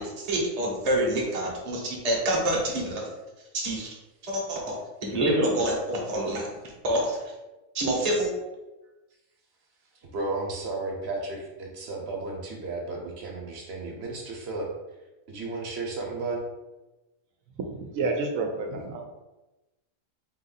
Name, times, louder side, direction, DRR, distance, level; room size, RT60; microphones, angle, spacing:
voice 1, 0.2-3.1 3.5-3.9 4.2-6.5 6.8-7.2 7.7-8.3, right 1 dB, 30° right, -2 dB, 0.9 m, -27 dB
voice 2, 10.1-14.7 15.3-16.4, right 3 dB, 55° right, 0 dB, 1.1 m, -33 dB
voice 3, 17.6-19.0, right 3 dB, 80° right, 2 dB, 1.0 m, -29 dB
4.2 x 2.6 x 3.9 m, 1.0 s
omnidirectional pair, 1.4 m